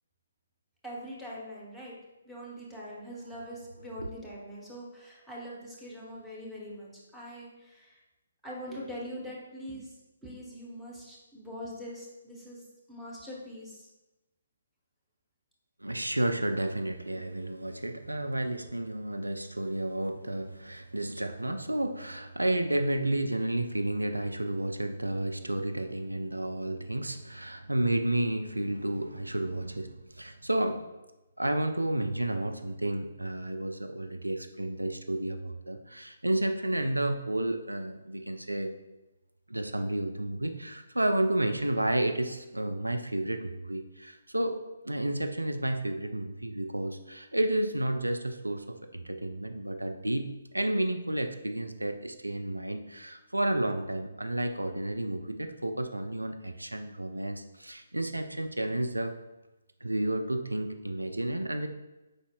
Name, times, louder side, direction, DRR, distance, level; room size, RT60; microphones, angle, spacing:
voice 1, 0.8-2.0 2.2-8.0 8.4-10.0 10.2-12.6 12.9-13.9, equal, ahead, -6 dB, 1.0 m, -43 dB
voice 2, 15.8-30.8 31.4-38.7 39.5-44.6 44.8-50.3 50.5-59.1 59.8-61.7, right 1 dB, 80° right, 7 dB, 0.4 m, -31 dB
5.1 x 4.1 x 2.3 m, 1.0 s
figure-of-eight pair, 135°, 0 cm